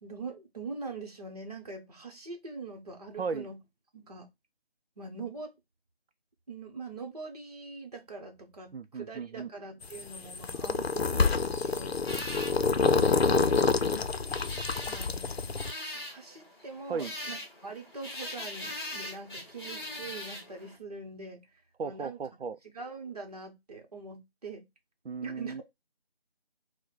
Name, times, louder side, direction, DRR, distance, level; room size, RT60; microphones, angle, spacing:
voice 1, 0.0-3.6 3.9-4.3 5.0-5.5 6.5-12.0 12.8-13.7 14.9-15.6 15.9-21.5 21.8-22.2 22.7-24.7 25.2-25.6, right 3 dB, 40° right, 1.0 m, -43 dB
voice 2, 3.2-3.5 8.7-9.5 16.9-17.1 21.8-22.6 25.0-25.6, right 5 dB, 75° right, 0.5 m, -36 dB
sound 1, 9.8-15.7, left 4 dB, 90° left, 0.6 m, -27 dB
sound 2, 12.1-20.8, left 1 dB, 25° left, 1.2 m, -42 dB
4.5 x 2.2 x 4.2 m
figure-of-eight pair, 170°, 30 cm